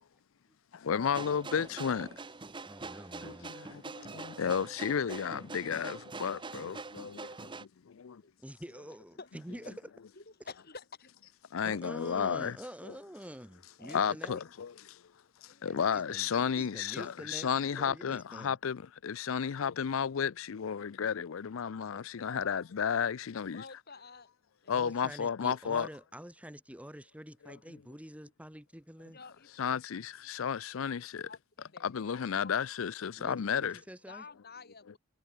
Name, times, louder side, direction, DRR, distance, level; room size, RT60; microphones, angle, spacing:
voice 1, 0.8-2.1 3.2-7.5 8.0-8.2 11.5-12.6 12.8-12.9 13.9-14.7 15.6-23.6 24.7-25.9 27.4-27.6 29.6-31.3 31.8-33.8, left 7 dB, 75° left, 0.5 m, -33 dB
sound 1, 1.0-7.6, right 3 dB, 25° right, 1.0 m, -44 dB
voice 2, 2.7-3.5 8.4-9.8 11.6-14.4 15.6-18.5 24.7-29.2 33.2-34.2, equal, 5° right, 6.4 m, -47 dB
voice 3, 10.2-11.1 13.8-14.5 15.2-15.8 21.9-22.5 23.5-24.3 24.6-25.0 29.1-29.5 31.3-31.9 32.4-32.5 33.0-33.4 34.1-35.0, left 4 dB, 50° left, 5.4 m, -51 dB
head